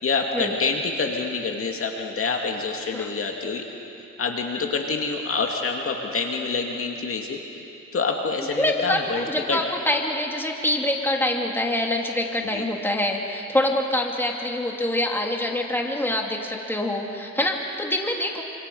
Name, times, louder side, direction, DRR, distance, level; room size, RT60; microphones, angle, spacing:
voice 1, 0.0-3.7 4.2-7.4 7.9-9.6 12.5-12.6, left 4 dB, 45° left, 2 dB, 2.3 m, -27 dB
voice 2, 8.6-18.4, left 1 dB, 5° left, 1 dB, 2.8 m, -25 dB
27.5 x 26.0 x 5.5 m, 2.9 s
cardioid pair, 90°, 30 cm